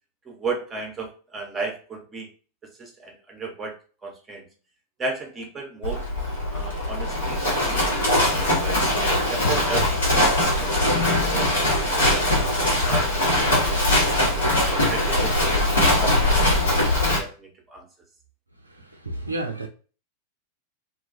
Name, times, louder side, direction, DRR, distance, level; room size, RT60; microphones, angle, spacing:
voice 1, 0.2-2.3 2.8-3.8 4.0-4.5 5.0-6.1 6.5-8.9 9.3-14.4 14.9-15.5 16.0-17.9, right 3 dB, 15° right, 1 dB, 0.7 m, -35 dB
Livestock farm animals working animals, 5.8-17.2, left 1 dB, 70° left, 1.0 m, -21 dB
voice 2, 18.6-19.7, right 2 dB, 80° right, 4 dB, 0.3 m, -32 dB
2.3 x 2.2 x 2.5 m, 0.36 s
figure-of-eight pair, 90°, 0 cm